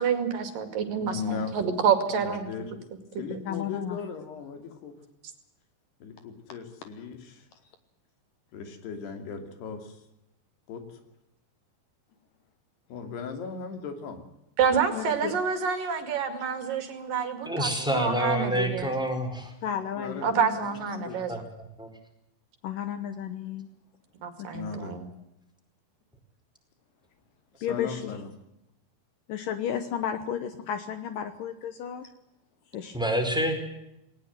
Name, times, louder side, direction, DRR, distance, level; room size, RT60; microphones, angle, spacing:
voice 1, 0.0-2.5 14.6-18.9 20.2-21.3 24.2-25.1, right 6 dB, 60° right, 8 dB, 3.8 m, -28 dB
voice 2, 1.0-1.5 2.1-2.8 3.2-4.9 6.0-7.5 8.5-10.0 10.7-10.8 12.9-14.2 20.0-20.3 20.6-20.7 21.0-21.4 24.5-25.0 27.6-28.3, left 5 dB, 85° left, 6 dB, 4.9 m, -37 dB
voice 3, 3.5-4.0 14.9-15.4 19.6-21.2 22.6-23.7 24.4-24.5 27.6-28.2 29.3-32.1 32.7-33.0, left 9 dB, 65° left, 9 dB, 2.6 m, -33 dB
voice 4, 17.5-19.5 21.3-21.4 21.8-21.9 32.9-33.5, equal, ahead, 6 dB, 4.2 m, -27 dB
19.5 x 19.0 x 9.2 m, 0.84 s
omnidirectional pair, 4.6 m